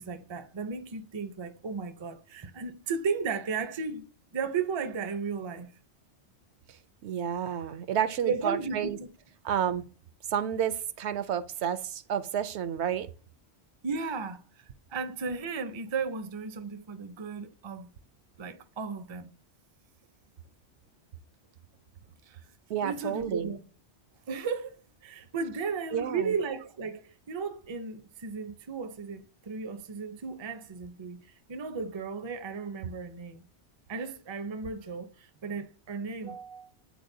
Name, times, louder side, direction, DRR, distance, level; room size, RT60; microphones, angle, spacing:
voice 1, 0.0-4.0 4.3-5.7 8.3-9.1 13.8-14.4 14.9-17.9 18.4-19.3 22.3-22.4 22.8-23.6 24.3-24.8 25.0-31.2 31.5-33.4 33.9-36.7, right 5 dB, 35° right, 0.4 m, -35 dB
voice 2, 7.0-9.0 9.4-9.8 10.3-13.1 22.7-23.5 25.9-26.3, right 9 dB, 75° right, 0.9 m, -30 dB
9.3 x 4.1 x 2.7 m
omnidirectional pair, 1.2 m